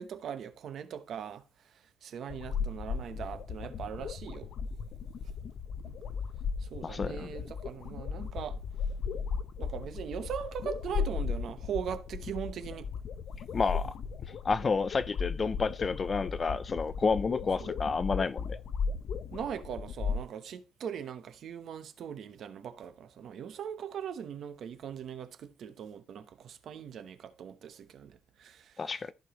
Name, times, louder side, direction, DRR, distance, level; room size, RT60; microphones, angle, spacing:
voice 1, 0.0-1.4 2.0-4.5 6.6-8.6 9.6-12.9 17.6-17.7 19.3-28.9, right 8 dB, 55° right, 0.9 m, -40 dB
sound 1, 2.3-20.2, left 6 dB, 55° left, 0.7 m, -36 dB
voice 2, 6.8-7.3 13.5-13.9 14.4-18.6 28.8-29.1, left 4 dB, 25° left, 0.4 m, -30 dB
14.5 x 5.0 x 3.0 m
cardioid pair, 165°, 0 cm